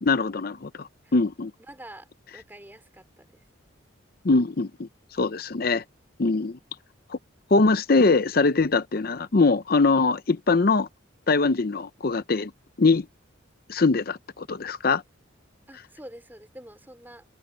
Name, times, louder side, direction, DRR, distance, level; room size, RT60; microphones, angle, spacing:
voice 1, 0.0-1.5 4.2-5.8 6.2-6.6 7.1-7.2 7.5-10.9 11.3-12.5 12.8-13.1 13.7-15.0, left 3 dB, 50° left, 0.6 m, -22 dB
voice 2, 1.7-2.1 2.3-3.4 6.3-6.4 15.7-17.2, right 1 dB, 10° right, 4.4 m, -46 dB
head